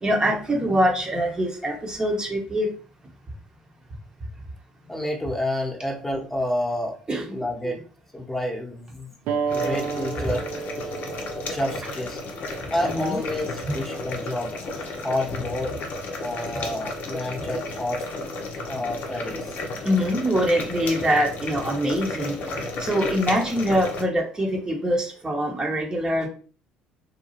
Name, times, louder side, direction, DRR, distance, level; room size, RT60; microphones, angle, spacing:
voice 1, 0.0-2.7 7.1-7.4 7.6-7.8 12.8-13.2 13.7-13.8 19.8-26.3, equal, 25° right, 0 dB, 0.8 m, -24 dB
voice 2, 4.9-7.0 7.3-7.8 8.1-9.1 9.5-10.4 11.5-12.2 12.7-15.7 16.2-18.0 18.7-20.1, left 1 dB, 10° left, -1 dB, 0.9 m, -29 dB
sound 1, 9.3-14.4, right 5 dB, 65° right, 0.4 m, -33 dB
sound 2, 9.5-24.0, left 2 dB, 60° left, 0.6 m, -33 dB
2.7 x 2.3 x 2.8 m, 0.40 s
hypercardioid pair, 60°, 3 cm